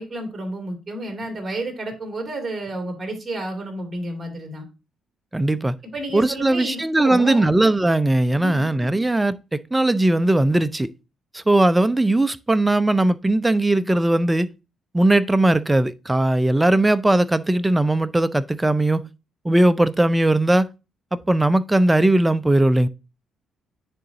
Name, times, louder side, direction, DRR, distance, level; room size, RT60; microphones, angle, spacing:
voice 1, 0.0-4.7 5.9-7.5 8.4-8.7, right 1 dB, 25° right, 2.4 m, -31 dB
voice 2, 5.3-5.7 6.1-10.9 11.3-14.5 14.9-19.1 19.4-20.7 21.1-22.9, right 1 dB, 10° right, 0.4 m, -19 dB
9.8 x 3.9 x 2.6 m
cardioid pair, 90°, 0 cm